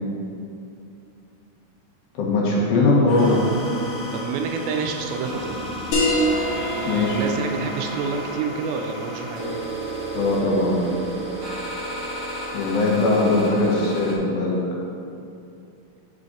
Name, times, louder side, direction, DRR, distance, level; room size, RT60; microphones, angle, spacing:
voice 1, 2.2-3.4 6.9-7.2 10.1-10.8 12.5-14.6, left 2 dB, 75° left, -4 dB, 2.8 m, -20 dB
sound 1, 3.1-14.2, right 1 dB, 55° right, 1.6 m, -33 dB
voice 2, 4.1-5.6 6.5-9.6, right 5 dB, 85° right, 4 dB, 2.4 m, -29 dB
sound 2, 5.9-11.0, equal, 60° left, 2.1 m, -28 dB
6.4 x 4.1 x 5.0 m, 2.6 s
omnidirectional pair, 4.4 m